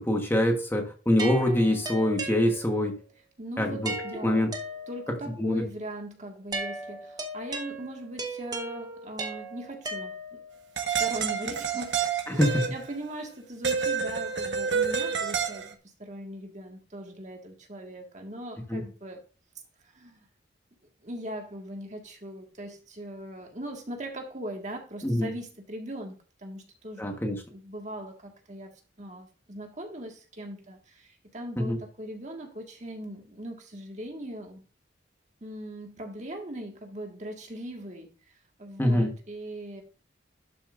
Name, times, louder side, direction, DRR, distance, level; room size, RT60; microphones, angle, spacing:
voice 1, 0.0-3.0 3.6-3.9 4.2-4.5 5.3-5.6 12.3-12.6 18.7-18.8 25.0-25.3 27.0-27.4 31.6-31.8 38.8-39.1, left 1 dB, 10° left, 1.2 m, -24 dB
sound 1, 1.2-3.0 3.9-5.3 6.5-10.6, right 2 dB, 20° right, 1.0 m, -37 dB
voice 2, 3.4-4.5 4.9-10.4 10.8-15.7 16.0-19.2 19.9-20.3 21.0-27.2 27.5-34.6 35.4-38.1 38.6-39.8, right 1 dB, 40° right, 1.7 m, -40 dB
sound 2, 10.8-12.9 13.6-15.7, right 6 dB, 75° right, 1.2 m, -28 dB
11.5 x 6.9 x 2.5 m
head